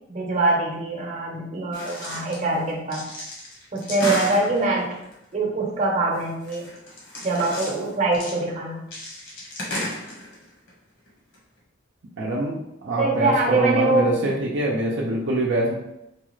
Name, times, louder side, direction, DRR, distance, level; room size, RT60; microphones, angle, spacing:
voice 1, 0.1-3.0 3.7-5.0 5.3-6.7 7.2-8.8 13.0-14.3, right 2 dB, 35° right, -2 dB, 0.9 m, -24 dB
sound 1, 1.7-2.4 2.7-5.1 6.1-7.9 8.1-8.4 8.9-10.7 11.1-11.2 11.3-11.4, left 1 dB, 70° left, 1.3 m, -33 dB
voice 2, 12.2-15.7, right 2 dB, 65° right, -3 dB, 0.7 m, -24 dB
4.7 x 2.4 x 3.1 m, 0.85 s
head